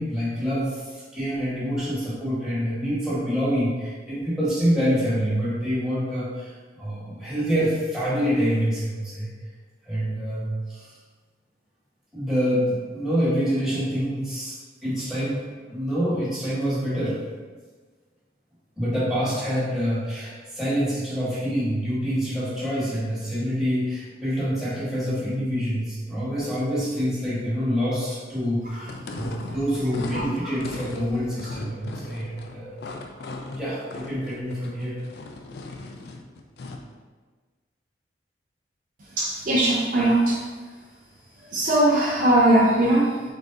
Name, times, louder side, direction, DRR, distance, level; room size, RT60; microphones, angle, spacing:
voice 1, 0.0-9.3 9.9-10.8 12.1-15.4 15.7-17.2 18.8-32.7 33.5-35.0, equal, 5° right, -11 dB, 1.3 m, -26 dB
sound 1, 28.8-36.9, left 2 dB, 65° left, 0.4 m, -37 dB
voice 2, 39.0-40.4 41.5-43.2, right 1 dB, 45° right, -4 dB, 0.5 m, -20 dB
3.9 x 3.5 x 2.6 m, 1.4 s
head